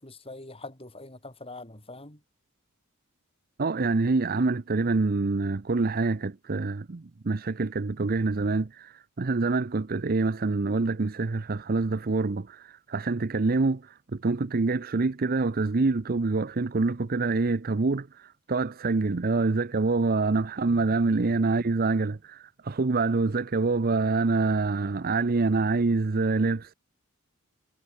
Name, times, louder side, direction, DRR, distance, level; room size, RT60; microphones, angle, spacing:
voice 1, 0.0-2.2, left 2 dB, 25° left, 5.4 m, -43 dB
voice 2, 3.6-26.7, right 3 dB, 45° right, 0.6 m, -26 dB
head